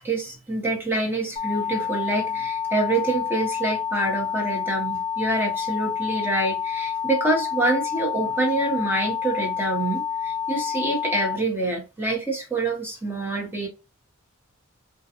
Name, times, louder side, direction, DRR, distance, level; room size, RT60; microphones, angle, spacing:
voice 1, 0.0-13.7, right 2 dB, 10° right, 0.9 m, -26 dB
sound 1, 1.4-11.4, left 7 dB, 35° left, 0.6 m, -28 dB
2.4 x 2.3 x 2.7 m
head